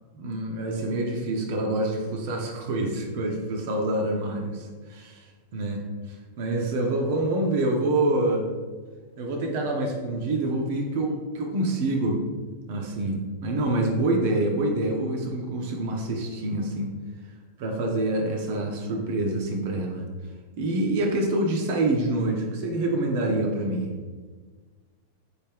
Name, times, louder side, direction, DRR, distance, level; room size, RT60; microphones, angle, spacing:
voice 1, 0.1-8.5 9.2-12.2 12.7-16.9 17.6-20.0 20.6-23.9, right 2 dB, 50° right, 1 dB, 0.6 m, -26 dB
4.2 x 3.2 x 3.4 m, 1.4 s
figure-of-eight pair, 90°, 0 cm